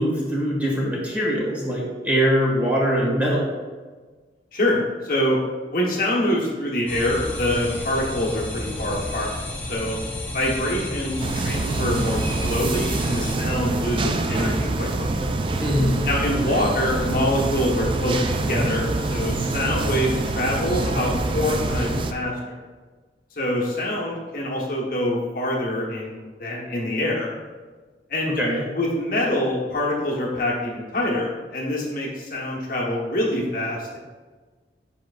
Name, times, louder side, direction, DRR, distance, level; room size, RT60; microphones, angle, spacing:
voice 1, 0.0-3.5 15.6-16.0 28.3-28.6, equal, 10° right, -5 dB, 1.7 m, -22 dB
voice 2, 4.5-5.4 5.7-9.3 9.7-10.0 10.3-15.2 16.1-22.6 23.3-27.3 28.1-28.4 28.7-34.0, left 1 dB, 55° left, -3 dB, 1.1 m, -25 dB
sound 1, 6.9-13.4, left 1 dB, 10° left, 0.8 m, -32 dB
sound 2, 11.2-22.1, right 2 dB, 30° right, 0.3 m, -25 dB
7.6 x 5.3 x 2.4 m, 1.4 s
head